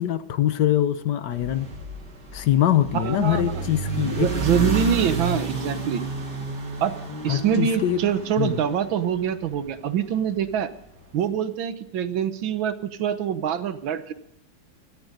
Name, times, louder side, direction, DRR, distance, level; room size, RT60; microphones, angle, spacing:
voice 1, 0.0-1.7 2.3-4.3 7.3-8.0 8.4-8.6, left 11 dB, 65° left, 12 dB, 1.4 m, -23 dB
sound 1, 1.3-9.7, right 3 dB, 55° right, 3.3 m, -31 dB
voice 2, 2.9-3.6 4.2-6.0 6.8-6.9 7.2-10.7 11.1-14.1, right 8 dB, 85° right, 11 dB, 1.8 m, -25 dB
17.5 x 13.5 x 4.0 m, 0.80 s
omnidirectional pair, 2.1 m